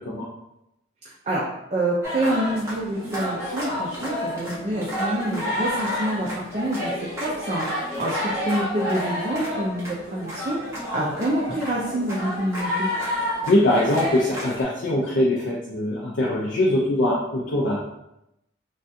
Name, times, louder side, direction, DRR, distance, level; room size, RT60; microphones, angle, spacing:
voice 1, 1.0-12.9, right 1 dB, 35° right, -5 dB, 0.4 m, -27 dB
sound 1, 2.0-14.6, left 1 dB, 15° right, 0.8 m, -30 dB
voice 2, 13.5-17.8, left 1 dB, 60° left, -5 dB, 0.5 m, -22 dB
3.4 x 2.3 x 2.6 m, 0.86 s
head